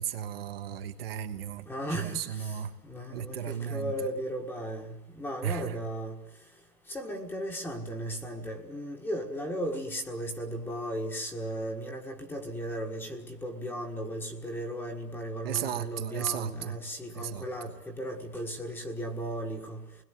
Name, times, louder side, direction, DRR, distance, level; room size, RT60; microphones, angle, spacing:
voice 1, 0.0-1.7 2.0-2.8 3.1-3.9 5.4-5.8 15.4-16.8 17.1-17.5, right 9 dB, 35° right, 6 dB, 1.3 m, -34 dB
voice 2, 1.7-6.2 6.9-19.8, equal, 5° left, 4 dB, 1.6 m, -36 dB
28.0 x 21.0 x 9.3 m, 0.93 s
hypercardioid pair, 155°, 48 cm